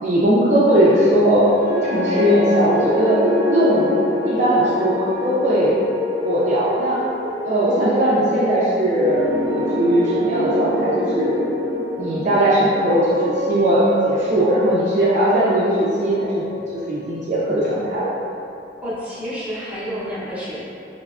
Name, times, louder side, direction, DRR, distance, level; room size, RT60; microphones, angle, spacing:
voice 1, 0.0-3.2 3.5-4.0 4.3-5.7 6.2-7.0 7.5-11.4 12.0-18.2, right 1 dB, 40° right, -8 dB, 0.3 m, -19 dB
sound 1, 1.4-17.7, left 1 dB, 40° left, 0.9 m, -25 dB
voice 2, 18.8-20.6, equal, 10° right, -11 dB, 0.7 m, -29 dB
3.3 x 2.0 x 2.3 m, 2.6 s
head